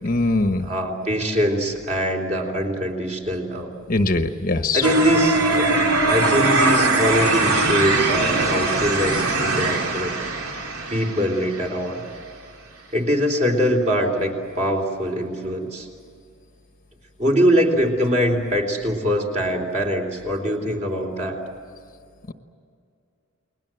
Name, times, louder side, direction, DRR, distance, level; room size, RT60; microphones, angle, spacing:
voice 1, 0.0-0.7 3.9-4.9, left 2 dB, 40° left, 7 dB, 1.2 m, -21 dB
voice 2, 0.6-3.7 4.7-10.1 10.9-12.0 12.9-15.9 17.2-21.4, equal, 30° right, 2 dB, 3.8 m, -23 dB
sound 1, 4.8-11.8, right 2 dB, 75° right, 2.9 m, -21 dB
30.0 x 21.5 x 7.8 m, 2.3 s
head